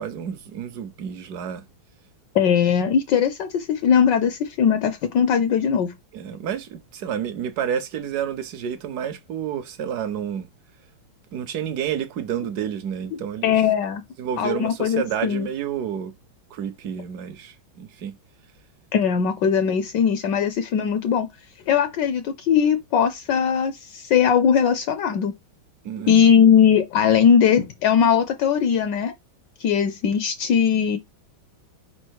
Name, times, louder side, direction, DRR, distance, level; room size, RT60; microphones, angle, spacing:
voice 1, 0.0-1.6 6.1-10.5 11.3-13.6 14.2-16.1 16.5-18.1 25.8-26.3, right 9 dB, 65° right, 1.0 m, -30 dB
voice 2, 2.3-5.9 13.4-14.0 14.4-15.5 18.9-21.3 21.7-25.3 26.1-29.1 29.6-31.0, left 7 dB, 70° left, 1.2 m, -19 dB
4.9 x 4.4 x 4.5 m
omnidirectional pair, 2.2 m